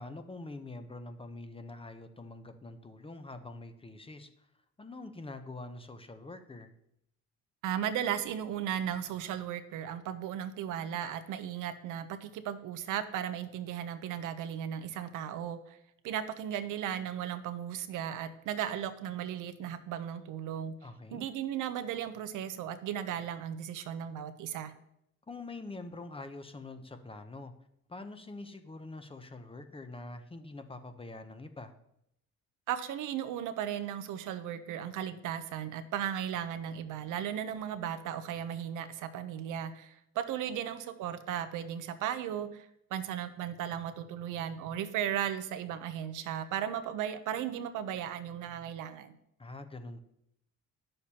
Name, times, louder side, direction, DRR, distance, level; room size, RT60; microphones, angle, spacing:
voice 1, 0.0-4.3 4.8-6.7 20.8-21.3 25.3-27.5 27.9-31.7 49.4-50.0, left 2 dB, 20° left, 8 dB, 0.7 m, -45 dB
voice 2, 7.6-15.8 16.0-20.7 21.1-24.7 32.7-49.2, right 10 dB, 85° right, 11 dB, 0.7 m, -36 dB
9.8 x 6.6 x 2.8 m, 0.77 s
cardioid pair, 90°, 30 cm